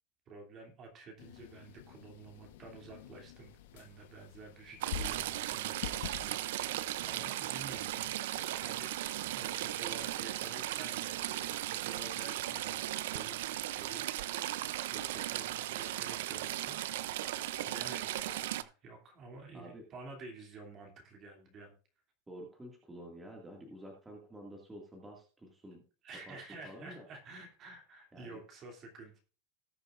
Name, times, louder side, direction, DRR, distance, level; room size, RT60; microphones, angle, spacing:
voice 1, 0.3-13.4 13.7-17.3 17.6-21.7 26.0-29.2, right 3 dB, 35° right, 2 dB, 2.8 m, -51 dB
sound 1, 1.2-6.3, left 10 dB, 80° left, 1.1 m, -46 dB
Stream / Trickle dribble, 4.8-18.6, right 14 dB, 80° right, 0.5 m, -37 dB
voice 2, 19.5-19.8 22.3-25.8 26.3-26.4 26.6-27.1 28.1-28.4, equal, 10° right, -1 dB, 2.1 m, -49 dB
18.5 x 6.8 x 2.5 m, 0.37 s
supercardioid pair, 145°, 0 cm